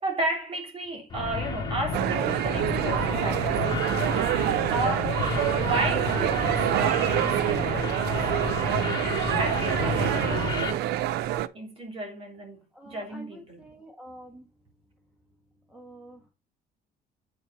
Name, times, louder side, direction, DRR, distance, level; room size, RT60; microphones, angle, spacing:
voice 1, 0.0-3.6 4.7-5.2 5.5-8.3 9.3-11.0 11.5-13.6, right 2 dB, 35° right, 3.4 m, -33 dB
sound 1, 1.1-10.7, left 4 dB, 25° left, 2.6 m, -31 dB
sound 2, 1.9-11.5, right 13 dB, 80° right, 0.6 m, -26 dB
voice 2, 12.7-14.5 15.7-16.3, right 1 dB, 5° right, 1.5 m, -47 dB
8.7 x 4.6 x 4.1 m
cardioid pair, 110°, 17 cm